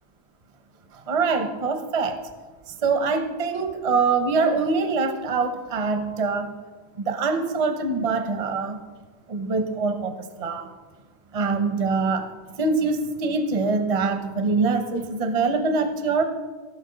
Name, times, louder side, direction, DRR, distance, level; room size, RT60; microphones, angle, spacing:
voice 1, 1.1-2.2 2.8-6.5 7.0-8.8 9.3-10.1 10.4-10.7 11.3-12.3 12.6-16.2, right 4 dB, 35° right, 7 dB, 0.6 m, -24 dB
17.5 x 6.0 x 3.9 m, 1.4 s
omnidirectional pair, 1.8 m